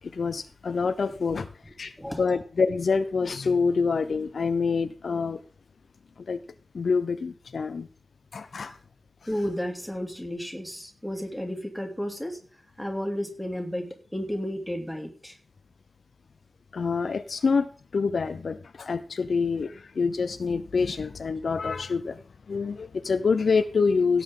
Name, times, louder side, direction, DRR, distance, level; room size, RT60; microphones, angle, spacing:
voice 1, 0.1-1.5 1.8-1.9 2.2-5.4 6.3-6.4 6.7-7.9 8.3-8.7 16.7-17.7 17.9-22.2 22.5-24.2, left 5 dB, 65° left, 11 dB, 0.7 m, -26 dB
voice 2, 2.0-2.3 9.3-12.4 12.8-15.3, equal, ahead, 2 dB, 2.7 m, -32 dB
17.0 x 7.8 x 3.8 m, 0.40 s
wide cardioid pair, 145°, 0 cm